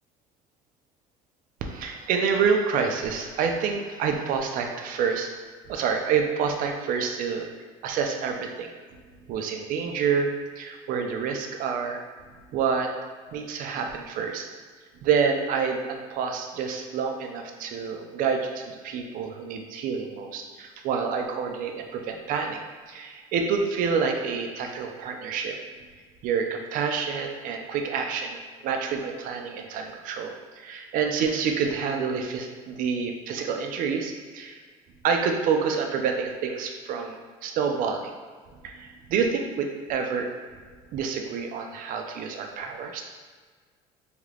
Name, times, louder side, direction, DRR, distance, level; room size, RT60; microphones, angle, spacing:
voice 1, 1.6-5.3 5.7-7.5 7.8-8.7 9.3-10.3 10.6-12.1 12.5-12.9 13.3-14.5 15.0-22.6 22.9-25.6 26.2-34.6 35.0-38.1 38.6-40.3 40.9-43.0, right 6 dB, 60° right, 4 dB, 0.4 m, -28 dB
2.8 x 2.4 x 3.3 m, 1.5 s
supercardioid pair, 95°, 16 cm